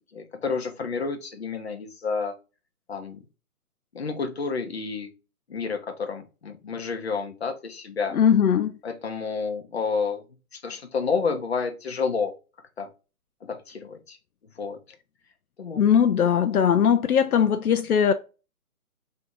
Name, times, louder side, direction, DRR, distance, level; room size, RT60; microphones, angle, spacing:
voice 1, 0.1-2.3 2.9-3.2 3.9-5.1 5.5-8.2 8.8-10.2 10.5-12.3 12.8-12.9 13.4-14.2 14.6-14.8 15.6-15.8, left 5 dB, 45° left, 0.8 m, -30 dB
voice 2, 8.1-8.7 15.8-18.1, left 8 dB, 75° left, 0.6 m, -20 dB
3.4 x 2.7 x 4.4 m
hypercardioid pair, 180°, 44 cm